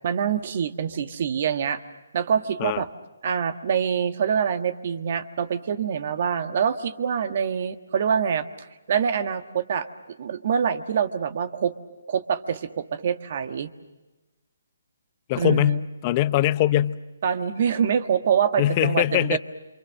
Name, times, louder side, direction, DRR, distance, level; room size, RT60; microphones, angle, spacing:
voice 1, 0.0-1.8 2.1-2.9 3.2-9.9 10.2-11.7 12.1-13.7 15.4-15.8 17.2-19.4, right 7 dB, 45° right, 9 dB, 1.5 m, -25 dB
voice 2, 15.3-17.0 18.6-19.4, left 13 dB, 25° left, 15 dB, 0.7 m, -22 dB
28.0 x 25.5 x 6.5 m, 1.1 s
hypercardioid pair, 160°, 0 cm